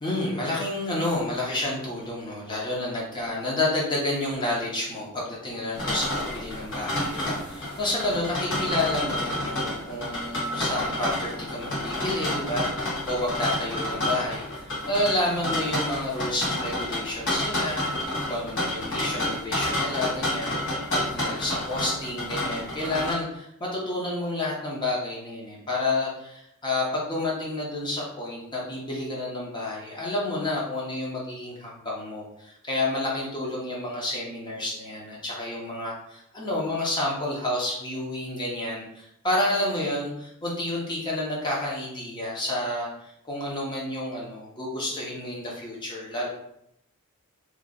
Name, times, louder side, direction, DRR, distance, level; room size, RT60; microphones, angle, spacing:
voice 1, 0.0-20.8 21.1-46.3, left 1 dB, 20° left, -4 dB, 1.0 m, -30 dB
sound 1, 5.7-23.1, left 1 dB, 60° left, 1.3 m, -29 dB
3.1 x 2.5 x 3.8 m, 0.77 s
head